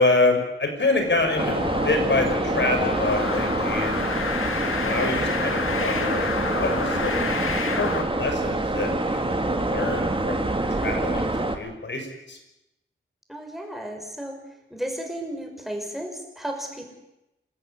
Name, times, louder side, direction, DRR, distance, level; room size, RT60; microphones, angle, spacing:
voice 1, 0.0-4.1 4.8-8.9 9.2-10.5 10.8-12.4, left 3 dB, 60° left, 5 dB, 5.8 m, -26 dB
Wind - Alsa Modular Synth, 1.0-8.0, left 5 dB, 85° left, 2.2 m, -30 dB
sound 1, 1.4-11.6, right 2 dB, 25° right, 2.5 m, -26 dB
voice 2, 13.3-14.4 14.7-16.8, right 1 dB, ahead, 2 dB, 5.9 m, -34 dB
28.0 x 14.0 x 9.9 m, 0.92 s
wide cardioid pair, 100°, 21 cm